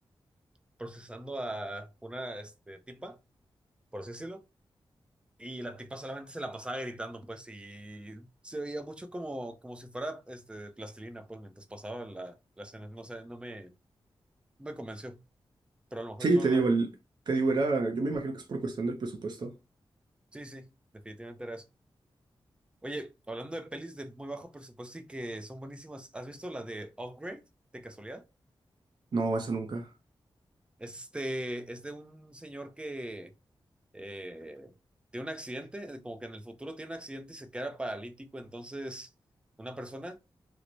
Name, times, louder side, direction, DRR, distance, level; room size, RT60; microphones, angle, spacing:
voice 1, 0.8-3.2 3.9-4.4 5.4-13.7 14.6-15.2 15.9-16.7 20.3-20.7 21.0-21.6 22.8-27.4 27.7-28.2 30.8-33.3 33.9-34.7 35.1-39.1 39.6-40.2, right 1 dB, 10° right, 0.5 m, -40 dB
voice 2, 16.2-16.9 17.3-19.5 29.1-29.9, right 3 dB, 55° right, 0.6 m, -28 dB
3.1 x 2.1 x 3.9 m
wide cardioid pair, 110°, 9 cm